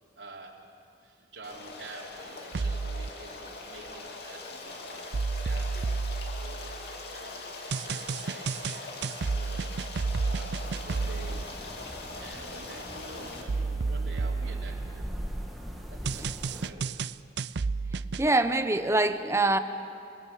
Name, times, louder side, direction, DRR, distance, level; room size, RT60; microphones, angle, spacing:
voice 1, 0.1-5.9 6.4-9.8 10.1-11.6 12.1-15.1 15.9-17.0, right 2 dB, 85° right, -3 dB, 3.7 m, -48 dB
Stream, 1.4-13.4, left 3 dB, 65° left, 2.7 m, -42 dB
sound 1, 2.5-3.1 5.1-7.0 7.7-11.4 13.5-15.3 16.0-18.3, right 4 dB, 65° right, 0.5 m, -31 dB
sound 2, 10.6-16.7, equal, ahead, 2.4 m, -42 dB
voice 2, 18.2-19.6, right 2 dB, 15° right, 9 dB, 1.0 m, -24 dB
28.5 x 20.0 x 8.5 m, 2.7 s
head